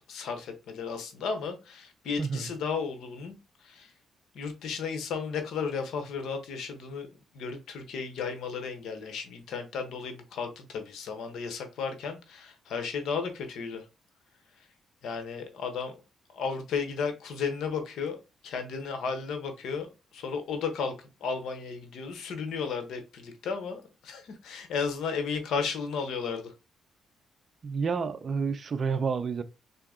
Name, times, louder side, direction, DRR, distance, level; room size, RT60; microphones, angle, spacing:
voice 1, 0.1-3.9 4.3-7.1 7.3-13.8 15.0-15.9 16.3-18.2 18.4-19.9 20.1-26.5, left 5 dB, 75° left, 0.9 m, -34 dB
voice 2, 2.2-2.5 27.6-29.4, right 5 dB, 45° right, 0.4 m, -29 dB
3.5 x 2.8 x 3.6 m
cardioid pair, 90°, 0 cm